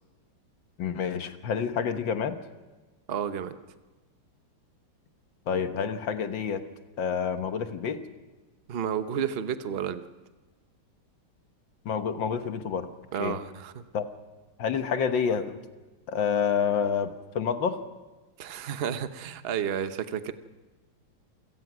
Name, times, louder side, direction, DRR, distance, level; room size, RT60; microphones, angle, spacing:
voice 1, 0.8-2.4 5.5-6.6 7.0-8.0 11.9-12.9 13.2-13.4 13.9-14.0 14.6-15.6 16.1-17.1 17.4-17.8, left 6 dB, 65° left, 9 dB, 1.8 m, -28 dB
voice 2, 3.1-3.5 8.7-10.0 13.1-13.8 18.4-20.3, right 8 dB, 45° right, 10 dB, 0.8 m, -31 dB
27.5 x 17.5 x 6.1 m, 1.2 s
omnidirectional pair, 2.3 m